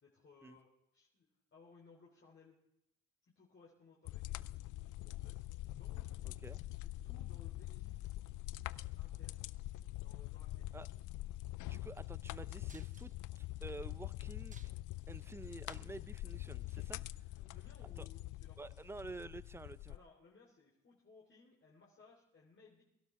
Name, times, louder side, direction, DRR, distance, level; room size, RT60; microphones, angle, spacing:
voice 1, 0.0-0.7 0.9-1.2 1.5-2.6 3.2-5.4 5.8-6.1 6.8-8.1 8.7-9.5 10.0-10.7 15.2-15.4 17.4-18.8 19.9-22.8, left 4 dB, 40° left, -3 dB, 3.2 m, -63 dB
sound 1, 4.0-20.0, left 17 dB, 80° left, 0.5 m, -44 dB
voice 2, 6.2-6.6 10.7-10.9 11.6-14.6 15.1-17.0 18.0-18.1 18.6-20.0, right 3 dB, 10° right, 16 dB, 0.5 m, -50 dB
sound 2, 12.7-13.5 13.9-14.0 14.3-15.0 15.4-16.1 16.6-16.8 17.8-17.9, right 4 dB, 25° right, 1.0 m, -62 dB
23.0 x 12.0 x 3.7 m, 0.83 s
cardioid pair, 90°, 30 cm